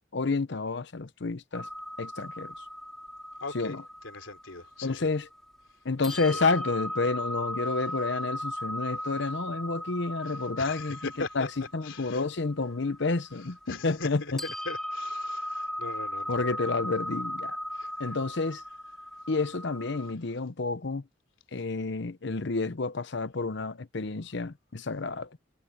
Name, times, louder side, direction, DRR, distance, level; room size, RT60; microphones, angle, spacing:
voice 1, 0.1-1.7 2.0-2.7 3.5-3.8 4.8-5.3 5.8-11.5 11.7-14.4 16.3-17.6 18.0-18.6 19.3-21.0 21.5-25.3, left 3 dB, 65° left, 0.8 m, -30 dB
sound 1, 1.5-5.6 6.0-14.1 14.4-20.1, equal, ahead, 5.2 m, -37 dB
voice 2, 3.4-5.1 6.3-6.4 10.3-11.5 11.8-12.2 13.7-16.4 17.7-18.1, left 3 dB, 80° left, 3.5 m, -40 dB
head